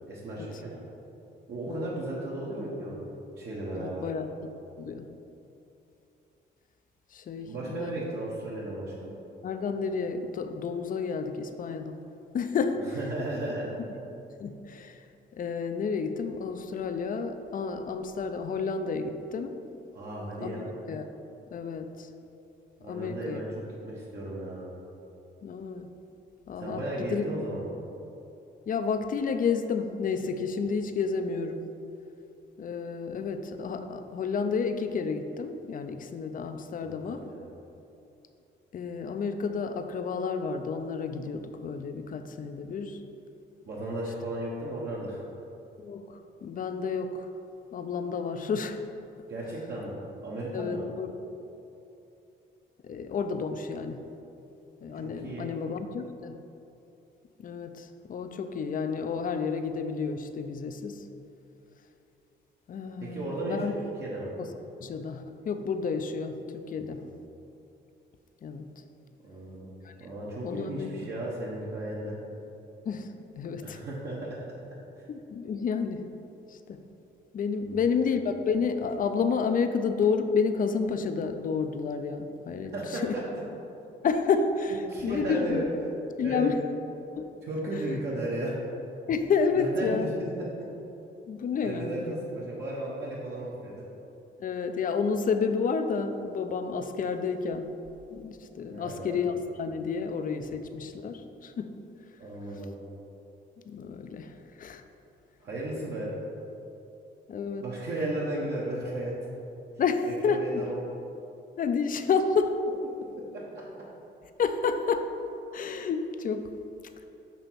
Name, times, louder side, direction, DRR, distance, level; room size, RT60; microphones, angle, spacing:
voice 1, 0.1-0.7 1.5-3.0 3.4-4.0 7.5-9.1 12.9-13.7 19.9-20.7 22.8-24.7 26.6-27.6 37.0-37.5 43.7-45.2 49.3-50.0 50.2-50.8 54.9-55.5 63.0-63.7 64.0-64.3 66.7-67.1 69.2-69.7 70.0-72.2 73.6-74.3 77.6-78.1 82.7-83.2 84.9-85.6 86.2-86.5 87.4-88.5 89.5-90.1 90.4-90.7 91.6-93.7 98.6-99.3 102.2-102.7 105.4-106.1 107.6-109.1 110.2-110.8 113.3-113.4, right 1 dB, 60° right, -6 dB, 1.2 m, -35 dB
voice 2, 3.7-4.3 4.8-5.1 7.1-7.9 9.4-12.0 12.3-13.0 14.4-15.0 15.4-19.6 20.4-20.5 20.9-21.0 21.5-22.1 22.9-23.4 25.4-25.9 26.5-27.2 28.7-31.6 32.6-37.2 38.7-43.0 45.8-47.3 47.7-48.8 50.5-51.1 52.8-54.0 54.8-56.4 57.4-61.1 62.7-63.7 64.4-64.5 64.8-67.0 68.4-68.7 69.8-69.9 70.4-70.9 72.9-73.1 73.4-73.8 75.1-76.0 76.5-76.8 77.3-83.2 84.0-85.6 86.2-86.6 87.2-87.3 89.1-90.1 91.3-92.2 94.4-97.7 98.1-101.7 103.7-104.8 107.3-107.6 109.8-110.5 111.6-112.6 114.4-115.1 115.5-116.5, left 5 dB, 45° left, 8 dB, 0.5 m, -30 dB
6.8 x 2.9 x 5.8 m, 2.8 s
cardioid pair, 90°, 20 cm